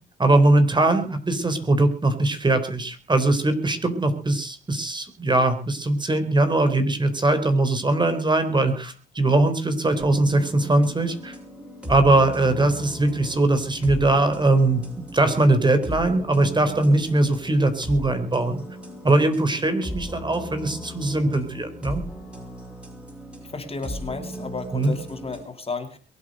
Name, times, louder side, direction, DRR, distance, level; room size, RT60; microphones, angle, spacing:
voice 1, 0.2-11.3 11.9-14.8 15.1-18.6 19.0-22.0 24.7-24.9, right 2 dB, 20° right, 10 dB, 4.0 m, -21 dB
sound 1, 10.0-25.4, equal, 5° right, 7.0 m, -37 dB
voice 2, 23.5-26.0, left 4 dB, 30° left, 7 dB, 2.7 m, -33 dB
22.5 x 8.7 x 6.4 m, 0.38 s
cardioid pair, 90°, 20 cm